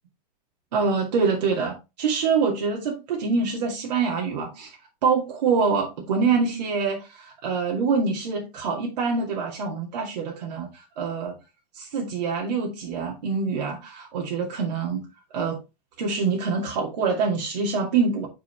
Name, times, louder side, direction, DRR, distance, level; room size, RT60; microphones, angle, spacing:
voice 1, 0.7-4.7 5.0-11.3 11.7-15.1 15.3-15.6 16.0-18.3, right 5 dB, 85° right, 2.4 m, -25 dB
9.2 x 4.4 x 3.3 m
hypercardioid pair, 120°, 21 cm